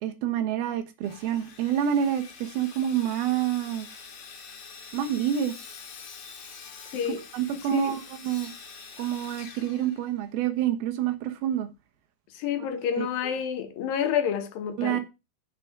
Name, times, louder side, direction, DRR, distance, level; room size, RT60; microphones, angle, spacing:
voice 1, 0.0-3.9 4.9-5.5 7.3-8.5 9.0-11.7 13.0-13.1 14.8-15.0, right 10 dB, 90° right, 3.1 m, -27 dB
Sawing, 1.0-10.5, left 5 dB, 50° left, 2.0 m, -46 dB
voice 2, 12.3-15.0, left 8 dB, 75° left, 2.8 m, -29 dB
7.7 x 7.1 x 5.9 m
omnidirectional pair, 4.2 m